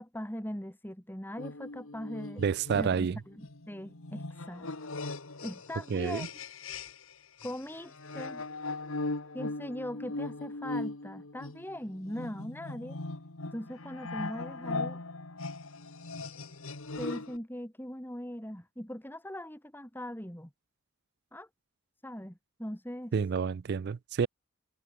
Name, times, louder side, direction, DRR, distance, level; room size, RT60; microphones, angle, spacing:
voice 1, 0.0-2.4 2.7-4.7 5.4-6.3 7.4-8.4 9.3-13.0 13.5-15.0 17.0-20.5 21.3-21.5 22.0-23.1, equal, 10° left, 3.2 m, -40 dB
sound 1, 1.4-7.1 7.4-17.4, left 2 dB, 75° left, 1.9 m, -39 dB
voice 2, 2.4-3.2 5.9-6.3 23.1-24.3, right 6 dB, 50° right, 0.3 m, -29 dB
head